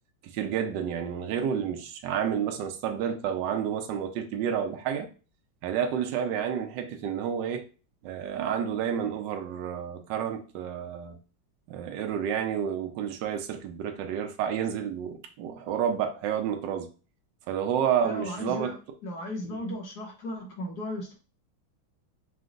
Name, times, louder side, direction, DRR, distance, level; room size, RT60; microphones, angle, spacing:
voice 1, 0.2-5.1 5.6-7.7 8.0-11.2 11.7-16.9 17.5-18.8, right 8 dB, 70° right, 1.2 m, -30 dB
voice 2, 18.0-18.8 19.0-21.1, left 1 dB, 60° left, 1.3 m, -35 dB
5.0 x 2.2 x 3.8 m
omnidirectional pair, 2.3 m